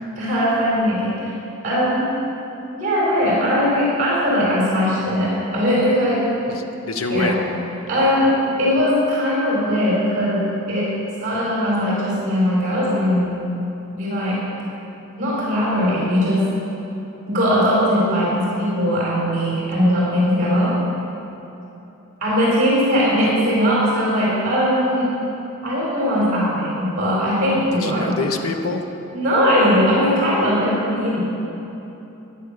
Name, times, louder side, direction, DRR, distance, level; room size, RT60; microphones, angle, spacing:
voice 1, 0.2-1.3 1.6-2.1 2.7-6.2 7.1-7.3 7.9-10.9 11.2-13.3 13.9-14.4 15.2-16.4 17.3-20.8 22.2-25.2 25.6-28.2 29.1-31.2, equal, 40° right, -7 dB, 4.3 m, -19 dB
voice 2, 6.5-7.4 27.7-28.9, left 3 dB, 80° left, 5 dB, 1.0 m, -25 dB
15.5 x 10.0 x 6.7 m, 3.0 s
head